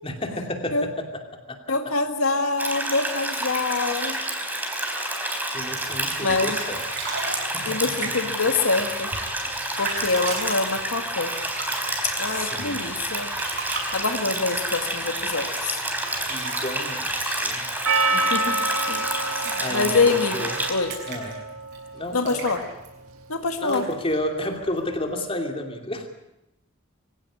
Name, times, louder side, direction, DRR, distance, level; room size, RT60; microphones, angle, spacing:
voice 1, 0.0-1.6 1.8-1.9 5.5-6.9 7.5-7.8 12.3-12.8 16.3-17.7 19.6-20.7 21.1-21.4 21.9-22.5 23.6-26.1, left 1 dB, 25° left, 4 dB, 2.8 m, -31 dB
voice 2, 1.7-4.2 6.2-6.6 7.7-9.1 9.8-11.3 12.2-13.3 13.9-15.8 18.1-19.1 19.7-20.9 22.1-22.6 23.3-23.8, left 3 dB, 90° left, 5 dB, 1.9 m, -25 dB
sound 1, 2.6-20.7, right 1 dB, 10° right, 4.0 m, -29 dB
sound 2, 5.6-25.2, right 3 dB, 50° right, 7.0 m, -38 dB
Percussion, 17.9-22.2, right 2 dB, 80° right, 2.1 m, -27 dB
24.0 x 16.5 x 9.9 m, 0.90 s
head